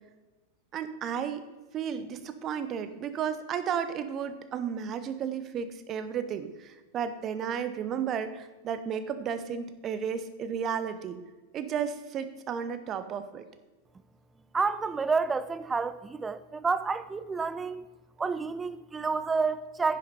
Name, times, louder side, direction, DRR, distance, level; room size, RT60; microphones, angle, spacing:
voice 1, 0.7-1.4 1.7-11.2 11.5-13.4, right 7 dB, 30° right, 0.8 m, -33 dB
voice 2, 14.5-17.8 18.2-20.0, right 4 dB, 15° right, 0.4 m, -29 dB
10.5 x 7.5 x 4.2 m
figure-of-eight pair, 90°, 0 cm